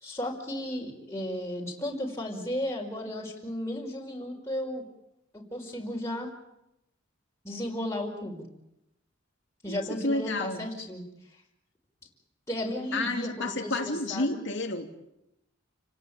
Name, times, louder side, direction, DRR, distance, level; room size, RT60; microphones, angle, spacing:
voice 1, 0.0-4.8 5.3-6.3 7.4-8.4 9.6-11.0 12.5-14.4, left 1 dB, 15° left, -2 dB, 5.1 m, -34 dB
voice 2, 9.7-10.7 12.9-14.9, left 2 dB, 60° left, 3 dB, 2.7 m, -30 dB
29.5 x 18.0 x 8.9 m, 0.86 s
head